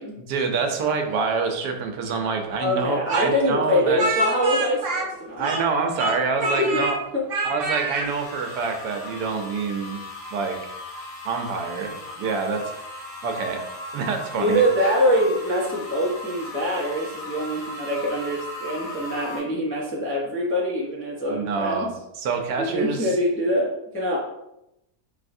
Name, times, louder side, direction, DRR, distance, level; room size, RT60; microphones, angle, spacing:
voice 1, 0.2-4.0 5.4-7.0 7.4-10.0 10.3-10.8 11.2-12.6 13.2-14.6 21.3-23.2, right 5 dB, 80° right, 4 dB, 1.2 m, -27 dB
voice 2, 2.6-5.5 6.4-6.8 7.1-7.2 14.4-21.9 22.6-24.2, equal, 20° left, -5 dB, 0.3 m, -24 dB
Speech, 3.1-5.7 6.0-7.0 7.3-8.1, right 2 dB, 60° right, 0.6 m, -26 dB
sound 1, 8.0-19.4, left 2 dB, 45° left, 1.1 m, -37 dB
4.5 x 3.3 x 2.6 m, 0.84 s
omnidirectional pair, 1.8 m